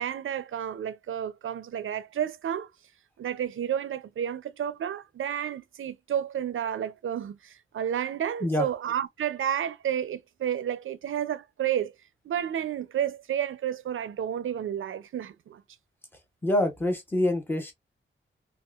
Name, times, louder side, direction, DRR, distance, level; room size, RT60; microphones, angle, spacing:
voice 1, 0.0-2.7 3.2-11.9 12.2-15.6, right 9 dB, 75° right, 0.4 m, -31 dB
voice 2, 16.4-17.7, left 1 dB, 10° left, 0.8 m, -26 dB
3.6 x 2.3 x 2.3 m
wide cardioid pair, 180°, 21 cm